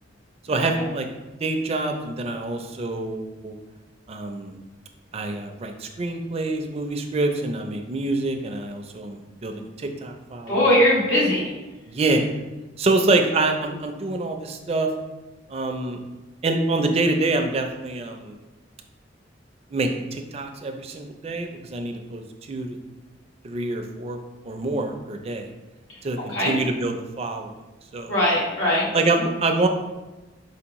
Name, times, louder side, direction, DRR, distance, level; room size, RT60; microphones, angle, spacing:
voice 1, 0.5-1.1 1.4-3.5 4.1-4.6 5.1-10.8 11.9-12.3 12.8-14.9 15.5-16.0 16.4-18.4 19.7-22.2 22.5-22.8 23.4-24.2 24.4-25.5 26.0-27.5 27.9-28.1 28.9-29.7, right 2 dB, 35° right, 5 dB, 0.4 m, -26 dB
voice 2, 10.5-11.5 26.3-26.5 28.1-28.9, left 1 dB, 85° left, -5 dB, 1.5 m, -20 dB
4.6 x 3.5 x 2.9 m, 1.1 s
head